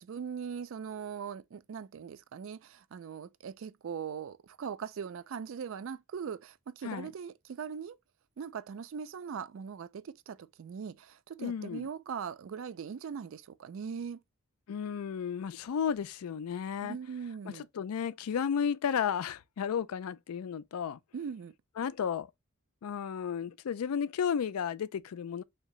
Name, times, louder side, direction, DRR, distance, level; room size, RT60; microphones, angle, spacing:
voice 1, 0.0-7.9 8.4-14.2 16.8-17.7 21.1-21.5, right 6 dB, 65° right, 0.3 m, -40 dB
voice 2, 11.4-11.9 14.7-17.0 17.5-21.0 21.8-22.3 22.8-25.4, left 7 dB, 85° left, 0.4 m, -33 dB
3.4 x 2.8 x 3.0 m
head